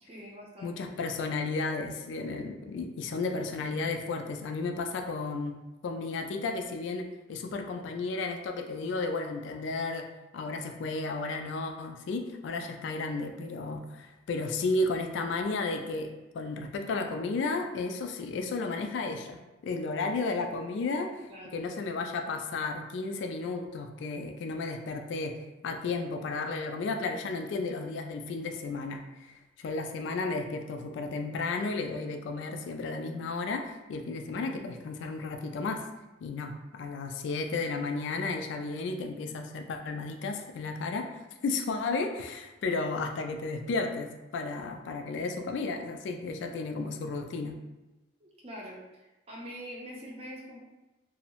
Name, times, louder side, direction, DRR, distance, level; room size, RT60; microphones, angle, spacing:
voice 1, 0.0-0.7 21.3-21.6 48.2-48.8 49.3-50.6, equal, 30° right, -3 dB, 0.5 m, -43 dB
voice 2, 0.6-5.5 5.8-10.1 10.3-21.2 21.5-25.4 25.6-35.8 36.2-47.6, left 3 dB, 70° left, 5 dB, 0.3 m, -33 dB
2.6 x 2.0 x 2.8 m, 1.1 s
head